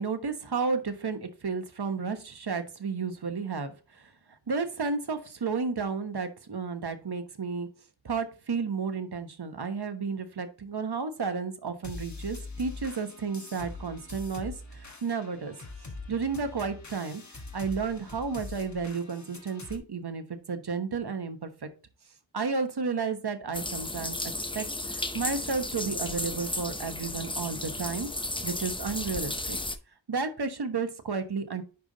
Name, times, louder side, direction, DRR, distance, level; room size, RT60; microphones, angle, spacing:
voice 1, 0.0-4.1 4.5-7.7 8.0-15.5 16.1-17.2 17.5-21.7 22.3-24.2 24.5-24.7 24.9-28.1 28.4-29.6 30.1-31.6, right 5 dB, 55° right, 8 dB, 1.1 m, -32 dB
sound 1, 11.8-19.8, left 3 dB, 40° left, 1.4 m, -43 dB
sound 2, 23.5-29.8, left 2 dB, 10° left, 0.6 m, -34 dB
10.5 x 3.5 x 3.9 m, 0.35 s
wide cardioid pair, 80°, 46 cm